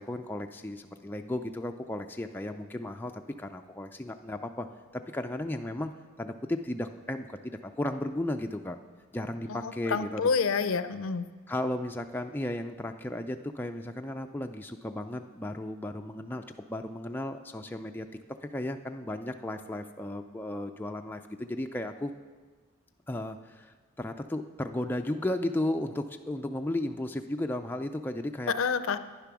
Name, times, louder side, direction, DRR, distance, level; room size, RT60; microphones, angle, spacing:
voice 1, 0.0-4.7 4.9-5.9 6.2-8.8 9.1-10.2 11.5-18.1 18.4-22.1 23.1-28.5, left 1 dB, 10° left, 5 dB, 0.3 m, -34 dB
voice 2, 9.5-11.3 28.5-29.0, left 5 dB, 65° left, 12 dB, 0.5 m, -28 dB
10.5 x 9.8 x 6.0 m, 1.4 s
head